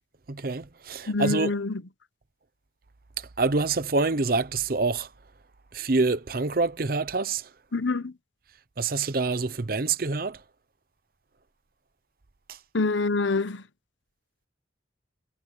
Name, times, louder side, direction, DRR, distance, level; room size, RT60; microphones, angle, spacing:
voice 1, 0.3-1.5 3.2-5.1 5.7-7.5 8.8-10.4 12.5-12.6, right 3 dB, 50° right, 0.8 m, -26 dB
voice 2, 1.1-1.8 7.7-8.1 12.7-13.6, left 3 dB, 85° left, 1.1 m, -26 dB
head